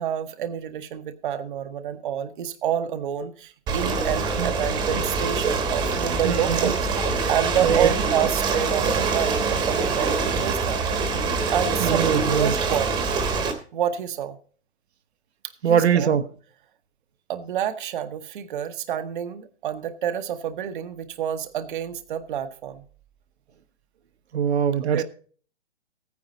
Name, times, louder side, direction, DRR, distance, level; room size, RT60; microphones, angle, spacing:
voice 1, 0.0-6.8 7.3-10.8 11.5-12.0 12.4-12.9 13.7-14.4 15.6-16.1 17.3-22.8 24.8-25.0, right 9 dB, 45° right, 1.0 m, -28 dB
Ocean, 3.7-13.5, right 4 dB, 10° right, 1.1 m, -24 dB
voice 2, 6.2-6.7 7.6-7.9 11.8-12.5 15.6-16.3 24.3-25.0, right 8 dB, 70° right, 1.0 m, -22 dB
14.5 x 9.6 x 3.9 m
hypercardioid pair, 160°, 34 cm